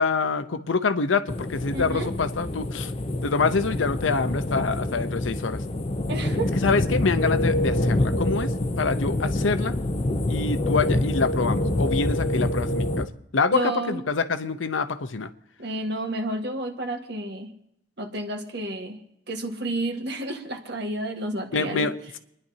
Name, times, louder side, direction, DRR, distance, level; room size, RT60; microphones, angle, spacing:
voice 1, 0.0-2.9 3.2-5.6 6.6-9.7 10.3-15.3 21.5-22.2, left 4 dB, 90° left, 10 dB, 0.8 m, -26 dB
sound 1, 1.3-13.1, left 1 dB, 30° left, 0.7 m, -26 dB
voice 2, 1.7-2.1 6.1-6.5 13.5-14.0 15.6-17.5 18.0-19.0 19.3-21.9, right 1 dB, 60° right, 4 dB, 1.6 m, -30 dB
28.5 x 10.5 x 2.8 m, 0.78 s
head